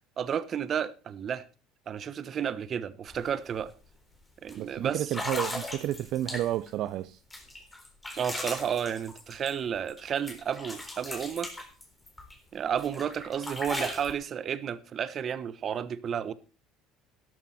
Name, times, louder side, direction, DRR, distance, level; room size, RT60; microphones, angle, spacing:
voice 1, 0.2-1.4 1.9-3.7 4.4-5.1 8.2-11.5 12.5-16.3, right 8 dB, 45° right, 1.1 m, -32 dB
sound 1, 3.1-3.2 3.6-3.9 4.5-4.6 5.1-6.7 7.3-10.0 10.3-12.4 12.8-14.1, left 1 dB, 10° left, 3.9 m, -38 dB
voice 2, 4.6-7.2, right 13 dB, 65° right, 0.6 m, -31 dB
12.5 x 12.5 x 4.3 m
supercardioid pair, 100°, 0 cm